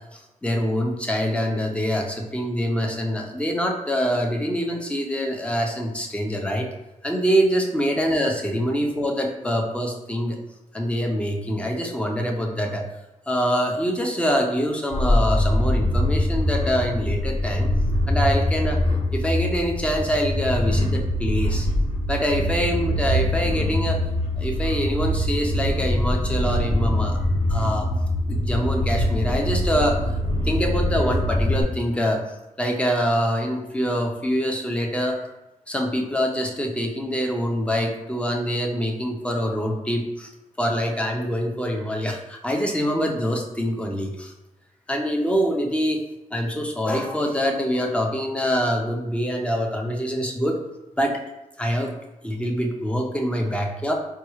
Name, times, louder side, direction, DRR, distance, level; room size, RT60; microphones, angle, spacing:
voice 1, 0.1-6.7 7.0-10.4 10.7-12.9 13.3-17.7 18.1-18.8 19.1-21.7 22.1-24.0 24.4-27.2 27.5-27.9 28.3-30.0 30.4-32.2 32.6-35.2 35.7-40.3 40.6-44.3 44.9-46.0 46.3-50.6 51.0-51.2 51.6-51.9 52.2-53.9, equal, 10° left, 0 dB, 0.6 m, -25 dB
sound 1, 14.9-31.6, left 1 dB, 60° left, 0.9 m, -23 dB
4.5 x 2.3 x 3.0 m, 0.99 s
cardioid pair, 90°, 13 cm